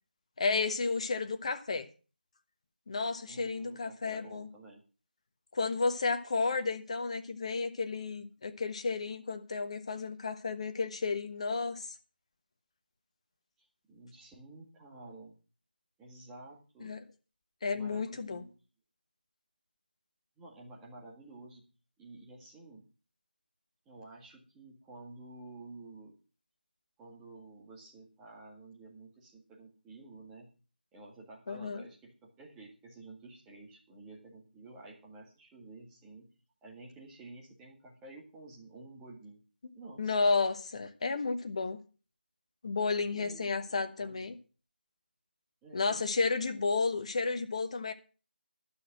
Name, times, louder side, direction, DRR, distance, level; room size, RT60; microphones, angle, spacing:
voice 1, 0.4-1.9 2.9-4.5 5.5-11.9 16.8-17.0 17.6-18.4 31.5-31.8 40.0-41.8 42.6-44.4 45.7-47.9, left 4 dB, 35° left, 1.2 m, -32 dB
voice 2, 3.3-4.8 13.6-15.4 16.0-17.0 17.7-18.5 20.4-21.7 22.0-22.8 23.9-26.1 27.0-30.5 30.9-36.3 36.6-39.4 39.7-40.3 42.9-44.4 45.6-46.1, right 2 dB, 5° right, 2.0 m, -51 dB
12.0 x 6.4 x 7.5 m
figure-of-eight pair, 170°, 6 cm